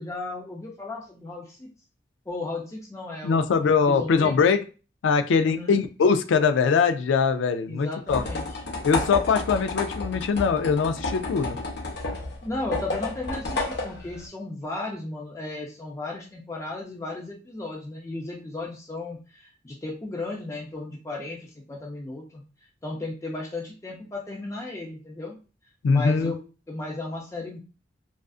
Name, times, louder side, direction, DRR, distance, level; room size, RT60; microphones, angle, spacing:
voice 1, 0.0-1.7 2.3-3.4 3.9-4.4 5.4-5.8 7.7-8.5 12.4-22.4 22.8-25.4 25.9-26.4 26.7-27.6, left 2 dB, 15° left, -1 dB, 0.4 m, -35 dB
voice 2, 3.2-4.6 5.0-8.2 8.8-11.6 25.8-26.3, left 5 dB, 90° left, 9 dB, 0.3 m, -22 dB
sound 1, 8.1-14.3, left 2 dB, 60° left, 0.7 m, -31 dB
2.4 x 2.4 x 2.3 m, 0.35 s
head